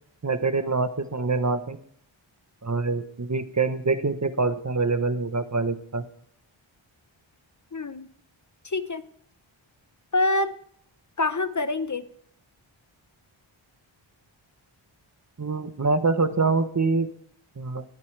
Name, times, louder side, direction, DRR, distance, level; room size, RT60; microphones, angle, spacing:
voice 1, 0.2-1.8 2.6-6.0 15.4-17.1 17.6-17.8, right 3 dB, 35° right, 10 dB, 0.9 m, -25 dB
voice 2, 7.7-8.1 8.6-9.0 10.1-10.6 11.2-12.0, left 2 dB, 35° left, 11 dB, 0.8 m, -25 dB
21.0 x 9.2 x 3.3 m, 0.65 s
wide cardioid pair, 75°, 49 cm